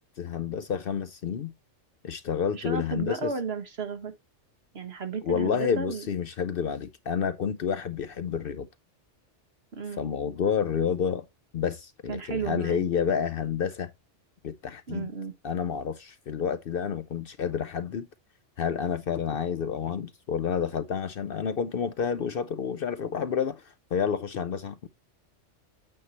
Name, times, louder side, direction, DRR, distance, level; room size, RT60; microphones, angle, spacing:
voice 1, 0.2-1.5 2.0-3.3 5.2-8.7 10.0-11.2 11.5-13.9 14.4-15.1 15.4-18.1 18.6-24.9, left 7 dB, 60° left, 0.7 m, -29 dB
voice 2, 2.5-4.1 4.7-6.1 9.7-10.1 12.1-12.8 14.9-15.3, right 5 dB, 60° right, 1.6 m, -33 dB
8.8 x 5.5 x 2.9 m
omnidirectional pair, 1.2 m